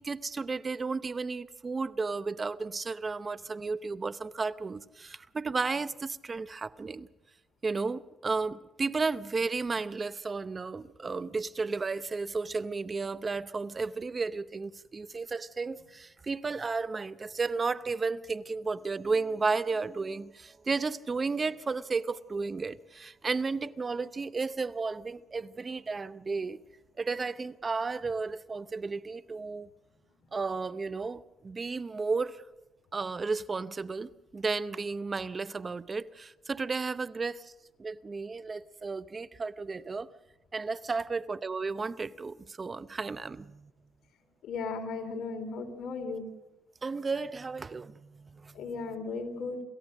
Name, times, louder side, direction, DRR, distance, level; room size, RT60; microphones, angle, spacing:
voice 1, 0.0-7.1 7.6-26.6 27.0-29.7 30.3-32.4 32.9-37.5 37.8-40.1 40.5-43.7 46.8-48.6, right 4 dB, 30° right, 0.7 m, -33 dB
voice 2, 44.4-46.3 48.5-49.6, left 4 dB, 70° left, 3.4 m, -36 dB
28.0 x 15.0 x 6.5 m
cardioid pair, 90°, 0 cm